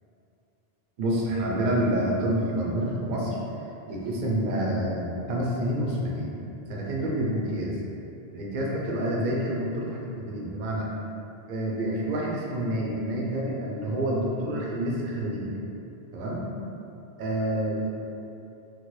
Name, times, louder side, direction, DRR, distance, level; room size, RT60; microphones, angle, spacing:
voice 1, 1.0-3.4 3.9-6.4 6.7-7.8 8.3-10.9 11.5-15.5 16.1-16.5 17.2-17.9, right 1 dB, 55° right, -3 dB, 0.6 m, -28 dB
3.0 x 2.2 x 3.0 m, 2.8 s
omnidirectional pair, 1.1 m